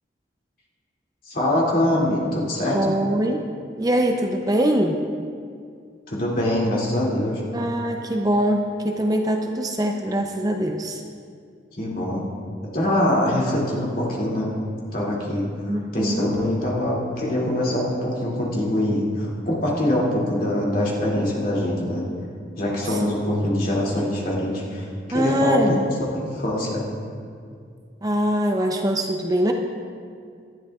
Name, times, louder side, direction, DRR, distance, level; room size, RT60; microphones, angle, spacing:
voice 1, 1.3-2.9 6.1-7.4 11.8-12.2 12.7-14.5 14.9-15.4 15.9-22.0 22.6-26.8, left 1 dB, 50° left, -5 dB, 2.5 m, -23 dB
voice 2, 2.7-3.4 3.8-5.0 7.5-11.0 15.7-16.3 22.9-23.1 25.1-25.9 28.0-29.5, right 1 dB, 20° right, 3 dB, 0.5 m, -23 dB
18.5 x 12.5 x 2.4 m, 2.2 s
head